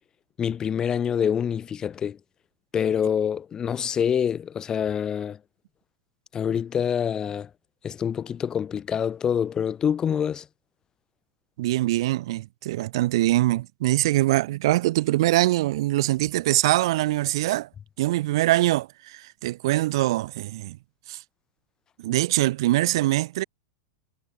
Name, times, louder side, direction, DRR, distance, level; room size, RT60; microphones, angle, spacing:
voice 1, 0.4-2.2 2.7-5.4 6.3-7.5 7.8-10.5, left 8 dB, 25° left, 0.7 m, -26 dB
voice 2, 11.6-17.7 18.0-20.8 21.1-21.2 22.0-23.4, right 16 dB, 70° right, 0.6 m, -23 dB
hypercardioid pair, 110°, 3 cm